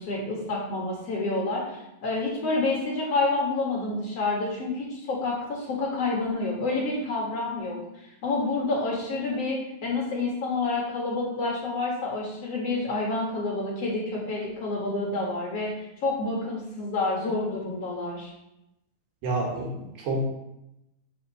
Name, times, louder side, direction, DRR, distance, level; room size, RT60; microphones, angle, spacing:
voice 1, 0.0-7.8 8.2-15.7 16.0-18.3, left 3 dB, 50° left, -3 dB, 2.6 m, -28 dB
voice 2, 19.2-20.3, right 1 dB, 85° right, -1 dB, 3.4 m, -28 dB
6.7 x 5.6 x 6.4 m, 0.87 s
omnidirectional pair, 3.8 m